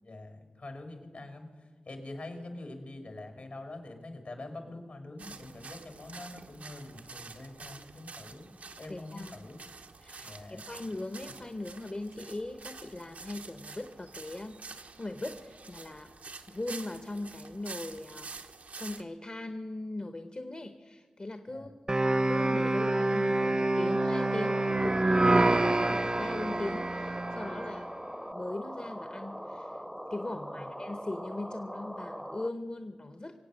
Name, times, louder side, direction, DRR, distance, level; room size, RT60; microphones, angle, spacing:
voice 1, 0.0-8.5 8.8-9.6 10.2-10.7 21.5-21.7 30.3-30.7, left 2 dB, 70° left, 5 dB, 2.9 m, -45 dB
sound 1, 5.2-19.0, right 4 dB, 80° right, 0.9 m, -48 dB
voice 2, 8.9-9.4 10.0-16.1 16.5-18.3 18.8-21.7 22.3-27.9 28.3-29.8 30.1-33.4, left 2 dB, 40° left, 8 dB, 1.0 m, -39 dB
sound 2, 21.9-27.8, right 2 dB, 30° right, 0.5 m, -27 dB
sound 3, 23.9-32.5, equal, ahead, 0.7 m, -41 dB
23.5 x 8.3 x 6.4 m, 1.5 s
cardioid pair, 40°, 3 cm